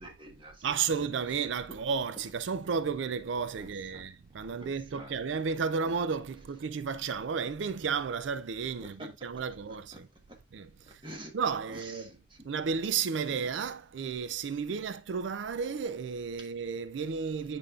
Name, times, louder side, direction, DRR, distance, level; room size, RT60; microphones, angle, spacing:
voice 1, 0.0-0.7 3.6-4.1 4.6-5.2 8.8-9.1 9.7-10.0 10.3-10.4 11.0-11.4 11.7-12.5 13.3-13.5 14.7-14.8 16.4-16.5, right 1 dB, 25° right, 1.3 m, -48 dB
voice 2, 0.6-10.1 10.5-11.0 11.3-12.1 12.4-17.6, right 6 dB, 85° right, 0.4 m, -33 dB
8.7 x 5.2 x 2.4 m
head